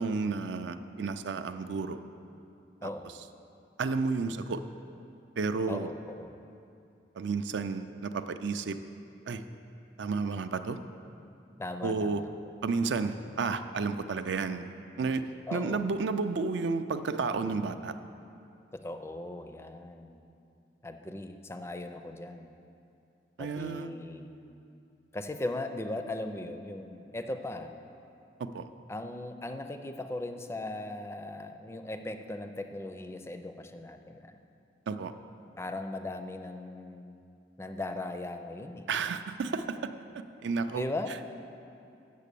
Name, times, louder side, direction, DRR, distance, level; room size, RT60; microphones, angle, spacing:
voice 1, 0.0-2.0 2.8-2.9 3.8-4.6 5.4-5.9 7.2-8.8 9.3-9.4 10.0-10.8 11.8-12.2 12.6-14.7 15.0-17.9 23.4-23.9 28.4-28.7 34.9-35.1 38.9-39.9 40.4-40.8, right 4 dB, 70° right, 10 dB, 0.4 m, -31 dB
voice 2, 2.8-3.1 5.7-6.3 11.6-12.3 15.5-15.9 18.7-20.2 20.8-22.5 23.4-24.3 25.1-27.7 28.9-34.4 35.6-37.2 37.6-38.9 40.7-41.2, left 2 dB, 15° left, 7 dB, 0.4 m, -38 dB
8.4 x 6.6 x 6.8 m, 2.6 s
head